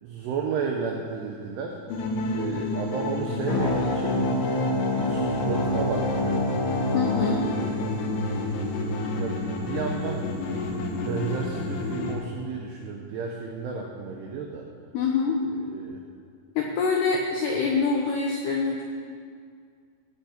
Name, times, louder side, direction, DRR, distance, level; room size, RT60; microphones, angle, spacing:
voice 1, 0.0-1.8 2.3-4.2 4.9-6.4 7.3-7.8 9.1-14.7 15.6-16.0, right 5 dB, 85° right, 0 dB, 2.3 m, -33 dB
sound 1, 1.9-12.2, left 2 dB, 70° left, 3.0 m, -30 dB
sound 2, 3.4-8.4, left 1 dB, 50° left, 2.2 m, -28 dB
voice 2, 6.9-7.5 14.9-15.4 16.6-18.8, left 4 dB, 90° left, 1 dB, 2.3 m, -25 dB
16.5 x 7.9 x 4.4 m, 2.1 s
omnidirectional pair, 5.8 m